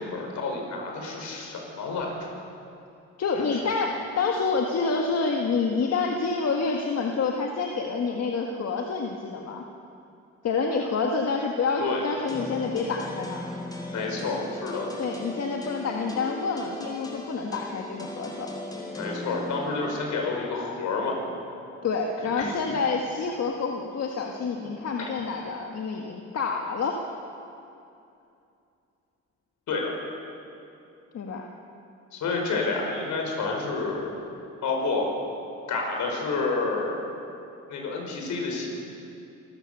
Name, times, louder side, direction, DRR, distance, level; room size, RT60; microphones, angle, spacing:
voice 1, 0.0-2.3 3.4-3.5 11.8-12.0 13.9-14.9 18.9-21.2 22.4-22.5 29.7-29.9 32.1-34.2 34.6-35.1 35.7-37.0 37.7-38.7, left 3 dB, 75° left, 1 dB, 5.4 m, -29 dB
voice 2, 3.2-9.6 10.4-13.5 15.0-18.5 21.8-27.0 31.1-31.4, left 4 dB, 55° left, 1 dB, 1.8 m, -28 dB
sound 1, 12.3-19.9, left 1 dB, 15° left, 3.9 m, -38 dB
26.5 x 14.0 x 6.9 m, 2.7 s
cardioid pair, 90°, 30 cm